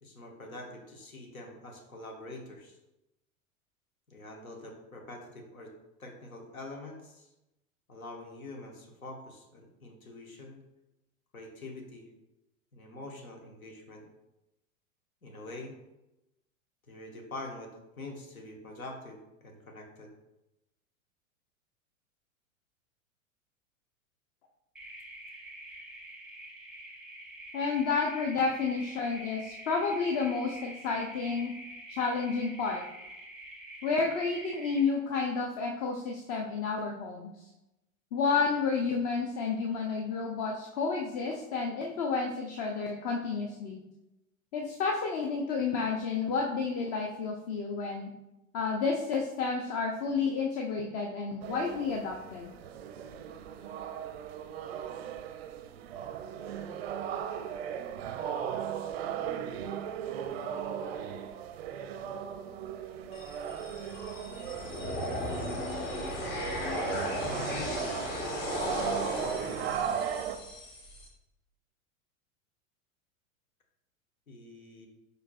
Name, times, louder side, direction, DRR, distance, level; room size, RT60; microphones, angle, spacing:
voice 1, 0.0-2.8 4.1-5.7 6.0-7.3 7.9-10.6 11.3-12.1 12.7-14.1 15.2-15.7 16.9-20.1 67.2-67.7 74.3-74.9, left 2 dB, 80° left, 2 dB, 1.0 m, -45 dB
sound 1, 24.8-34.8, right 1 dB, ahead, 0.8 m, -46 dB
voice 2, 27.5-31.5 31.9-32.8 33.8-37.3 38.1-43.8 44.5-48.1 48.5-52.5, left 4 dB, 30° left, 1 dB, 0.4 m, -31 dB
sound 2, 51.4-70.4, right 8 dB, 50° right, 0.4 m, -37 dB
sound 3, 63.1-71.1, left 1 dB, 60° left, 1.5 m, -36 dB
4.9 x 4.5 x 2.2 m, 0.94 s
figure-of-eight pair, 90°, 42 cm